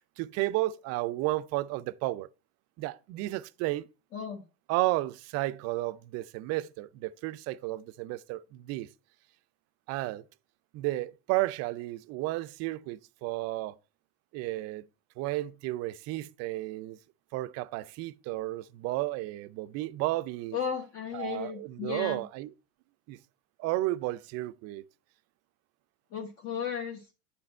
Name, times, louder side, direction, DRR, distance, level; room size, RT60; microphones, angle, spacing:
voice 1, 0.0-2.3 2.8-3.9 4.7-8.9 9.9-10.2 10.7-13.8 14.3-14.8 15.2-17.0 17.3-20.6 21.1-22.5 23.1-23.2 23.6-24.8, right 18 dB, 45° right, 0.5 m, -32 dB
voice 2, 4.1-4.4 20.5-22.2 26.1-27.1, left 7 dB, 40° left, 1.1 m, -35 dB
8.8 x 4.2 x 4.3 m
supercardioid pair, 110°, 35 cm